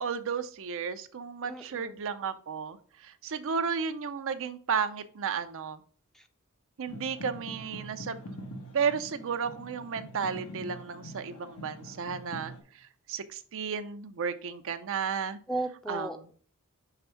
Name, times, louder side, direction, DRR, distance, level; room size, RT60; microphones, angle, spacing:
voice 1, 0.0-5.8 6.8-8.2 8.7-15.4 15.9-16.3, right 6 dB, 65° right, 10 dB, 0.5 m, -33 dB
voice 2, 1.4-2.0 6.2-6.3 15.5-16.3, right 2 dB, ahead, 7 dB, 0.5 m, -35 dB
sound 1, 6.9-12.6, equal, 85° left, 1.3 m, -44 dB
5.8 x 3.4 x 5.6 m, 0.43 s
head